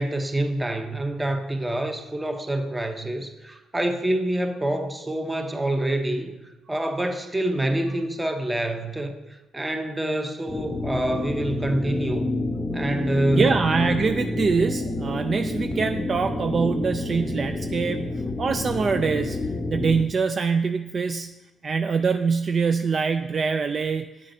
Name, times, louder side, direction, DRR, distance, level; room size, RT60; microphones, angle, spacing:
voice 1, 0.0-6.4 6.7-9.2 9.5-12.3 12.7-13.6, right 1 dB, 15° right, 6 dB, 0.8 m, -26 dB
sound 1, 10.5-20.0, left 2 dB, 25° left, 0.6 m, -28 dB
voice 2, 13.3-19.4 19.7-21.4 21.6-24.3, right 5 dB, 45° right, 8 dB, 0.3 m, -24 dB
8.7 x 7.4 x 2.7 m, 1.1 s
cardioid pair, 90°, 0 cm